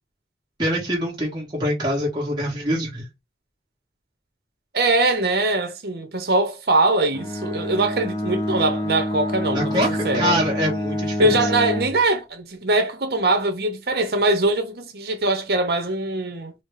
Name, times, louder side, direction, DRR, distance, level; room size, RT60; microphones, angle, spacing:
voice 1, 0.6-3.0 9.5-11.3, equal, 25° right, 1.2 m, -24 dB
voice 2, 4.7-10.4 11.2-16.5, right 2 dB, 60° right, 0.8 m, -22 dB
Bowed string instrument, 7.1-12.0, left 1 dB, 20° left, 0.5 m, -27 dB
4.0 x 2.0 x 3.3 m
head